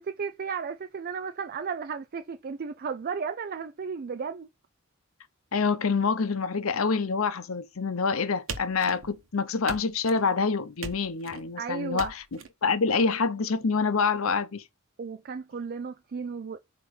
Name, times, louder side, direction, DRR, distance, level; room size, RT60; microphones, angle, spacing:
voice 1, 0.0-4.5 11.6-12.1 15.0-16.6, right 5 dB, 45° right, 0.4 m, -34 dB
voice 2, 5.5-12.2 12.6-14.6, left 4 dB, 75° left, 0.7 m, -26 dB
sound 1, 8.5-9.3 9.7-10.3 10.8-11.4 12.0-12.5, right 4 dB, 70° right, 1.1 m, -39 dB
7.8 x 3.0 x 4.8 m
head